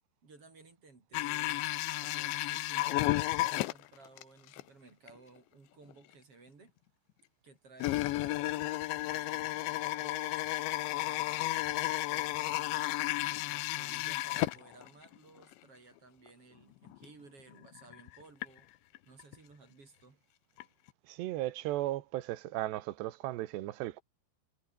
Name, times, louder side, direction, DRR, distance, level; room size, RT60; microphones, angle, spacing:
voice 1, 0.2-1.7 2.0-6.7 7.4-10.4 10.9-12.9 13.5-18.7 19.0-20.2, right 3 dB, 35° right, 5.0 m, -57 dB
sound 1, 1.1-4.2 4.5-4.6 5.1-5.2 5.9-6.0 7.8-15.2 15.4-15.5 16.3-16.4 16.9-17.1 17.5-18.5 19.0-19.4 20.6-20.7 20.9-21.0, left 17 dB, 90° left, 3.3 m, -33 dB
voice 2, 21.1-24.0, right 16 dB, 75° right, 3.2 m, -36 dB
omnidirectional pair, 5.0 m